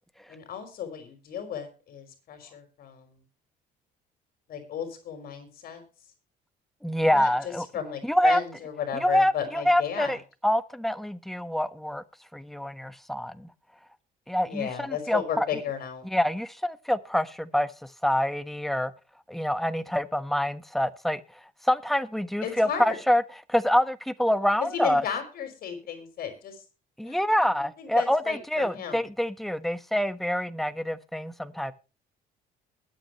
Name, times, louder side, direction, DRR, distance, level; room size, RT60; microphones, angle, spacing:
voice 1, 0.3-3.2 4.5-5.8 7.1-10.2 14.4-16.1 22.4-23.0 24.6-26.6 27.0-29.0, left 8 dB, 65° left, 5.3 m, -34 dB
voice 2, 6.8-7.7 8.0-8.4 9.0-10.2 10.4-12.0 12.3-13.5 14.3-15.5 16.1-17.7 18.0-18.9 19.3-21.2 21.6-23.2 23.5-25.0 27.0-31.7, equal, ahead, 1.3 m, -26 dB
21.0 x 8.8 x 3.1 m
cardioid pair, 110°, 17 cm